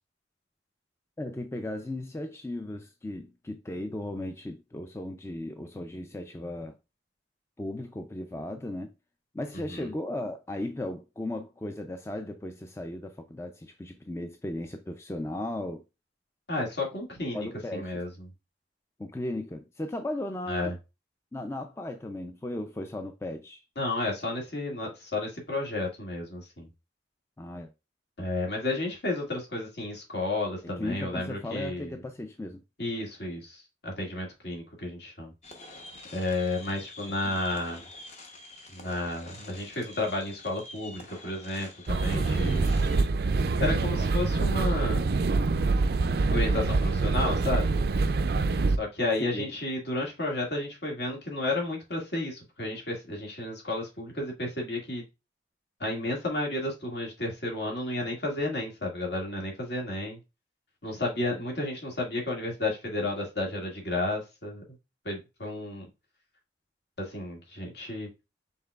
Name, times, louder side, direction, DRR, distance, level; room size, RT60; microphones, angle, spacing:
voice 1, 1.2-6.8 7.6-8.9 9.3-15.8 17.3-17.9 19.0-20.7 21.3-23.6 27.4-27.7 30.6-32.6 49.2-49.5, left 1 dB, 15° left, 0.3 m, -36 dB
voice 2, 16.5-18.1 20.5-20.7 23.8-26.7 28.2-32.0 32.8-35.3 36.1-37.8 38.7-42.7 43.6-45.1 46.3-47.7 48.8-55.0 55.8-60.2 60.8-64.6 65.1-65.8 67.0-68.1, left 2 dB, 65° left, 2.0 m, -32 dB
sound 1, 35.4-43.1, left 2 dB, 35° left, 0.9 m, -47 dB
sound 2, 41.9-48.8, right 3 dB, 55° right, 0.4 m, -25 dB
5.5 x 3.8 x 2.3 m
head